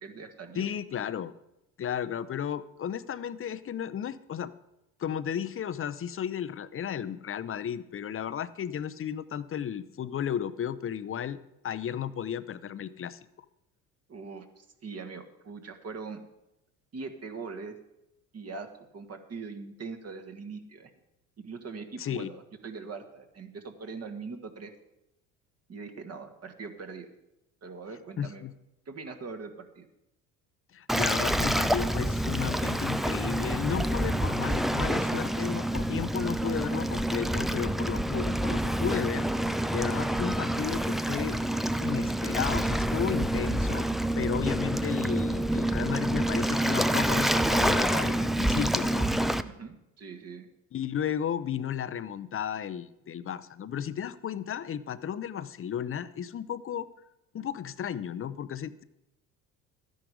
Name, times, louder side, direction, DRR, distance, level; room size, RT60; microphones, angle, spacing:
voice 1, 0.0-0.7 14.1-16.2 16.9-17.8 18.3-20.9 21.4-24.7 25.7-27.1 27.6-28.4 28.8-29.9 49.4-50.5, right 4 dB, 40° right, 6 dB, 1.6 m, -41 dB
voice 2, 0.6-1.3 1.8-4.5 5.0-11.4 11.6-13.2 22.0-22.3 28.2-28.5 30.7-39.3 39.7-41.4 41.8-43.9 44.2-49.1 50.7-56.9 57.3-58.8, left 9 dB, 35° left, 14 dB, 0.7 m, -34 dB
Waves surf, 30.9-49.4, right 1 dB, ahead, 0.4 m, -27 dB
12.5 x 10.0 x 5.0 m, 0.89 s
hypercardioid pair, 75°, 40 cm